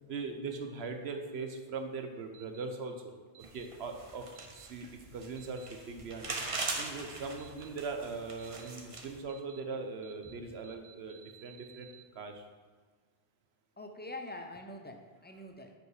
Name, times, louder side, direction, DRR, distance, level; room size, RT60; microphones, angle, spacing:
voice 1, 0.1-2.9 3.5-4.2 4.5-4.9 5.1-6.4 6.8-12.4, right 4 dB, 85° right, 5 dB, 1.2 m, -40 dB
sound 1, 2.3-2.6 3.3-3.7 4.3-4.7 5.4-5.7 6.4-6.7 7.4-7.7 8.4-8.7 9.3-9.6 10.0-10.3 10.6-12.0, right 12 dB, 65° right, 0.8 m, -57 dB
sound 2, 3.4-9.2, right 3 dB, 35° right, 0.8 m, -41 dB
voice 2, 13.8-15.7, left 2 dB, 10° left, 4 dB, 0.6 m, -45 dB
9.1 x 5.3 x 4.9 m, 1.5 s
omnidirectional pair, 1.0 m